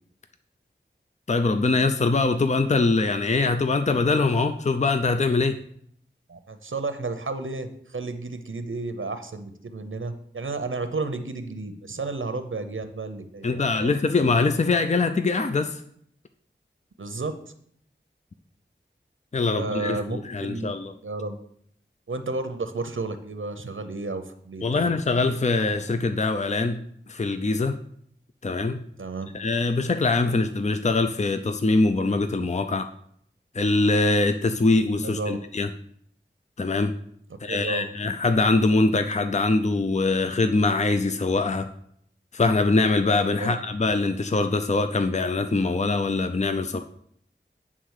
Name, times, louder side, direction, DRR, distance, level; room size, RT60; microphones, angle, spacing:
voice 1, 1.3-5.6 13.4-15.8 19.3-20.9 24.6-26.8 27.1-27.8 28.4-28.8 29.3-32.9 33.5-35.7 36.6-36.9 37.4-41.7 42.3-46.8, left 3 dB, 35° left, 8 dB, 0.5 m, -23 dB
voice 2, 6.3-14.0 17.0-17.3 19.5-20.7 21.0-21.4 22.1-24.9 29.0-29.3 35.0-35.4 37.5-37.9 43.4-43.5, right 3 dB, 85° right, 9 dB, 0.7 m, -32 dB
9.6 x 3.7 x 6.4 m, 0.67 s
wide cardioid pair, 40°, 20 cm